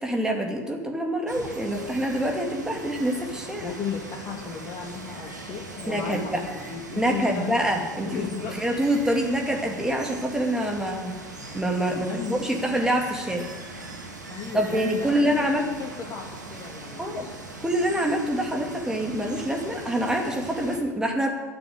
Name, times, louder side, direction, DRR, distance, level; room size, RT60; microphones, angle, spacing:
voice 1, 0.0-3.7 5.9-6.4 7.0-11.1 11.5-13.5 14.5-15.6 17.0-17.2 17.6-21.3, right 1 dB, 5° right, 1 dB, 2.5 m, -26 dB
Water, 1.3-20.8, right 2 dB, 90° right, 2.1 m, -40 dB
voice 2, 3.6-7.6 8.1-8.6 8.9-9.0 11.9-12.4 12.7-12.8 14.3-17.3, left 7 dB, 40° left, -2 dB, 2.2 m, -35 dB
13.0 x 7.1 x 9.7 m, 1.3 s
figure-of-eight pair, 70°, 9 cm